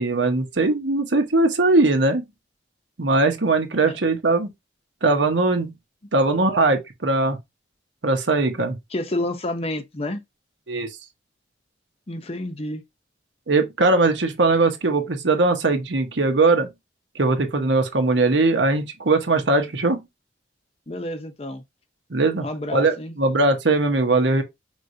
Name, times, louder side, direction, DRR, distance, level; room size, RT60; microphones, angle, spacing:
voice 1, 0.0-2.2 3.0-4.5 5.0-5.7 6.1-7.4 8.0-8.8 10.7-10.9 13.5-16.7 17.1-20.0 22.1-22.5 22.7-24.4, right 3 dB, 75° right, 1.0 m, -20 dB
voice 2, 8.9-10.2 12.1-12.8 20.9-21.6 22.4-23.1, left 1 dB, 30° left, 0.6 m, -29 dB
5.3 x 3.2 x 2.6 m
head